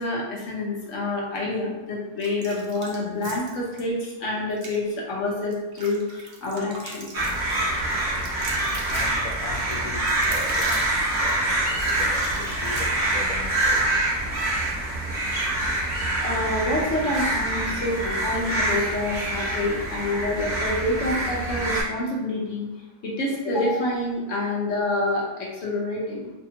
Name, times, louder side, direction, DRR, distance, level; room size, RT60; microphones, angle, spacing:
voice 1, 0.0-7.1 16.2-22.7 23.0-26.3, left 2 dB, 90° left, -3 dB, 1.1 m, -27 dB
sound 1, 2.2-3.8 4.5-4.8 5.3-13.3, right 3 dB, 60° right, 0.6 m, -39 dB
sound 2, 7.1-21.8, right 1 dB, 20° right, 1.3 m, -25 dB
voice 2, 8.9-14.2, left 4 dB, 65° left, -1 dB, 0.3 m, -40 dB
2.8 x 2.3 x 2.7 m, 1.0 s
omnidirectional pair, 1.2 m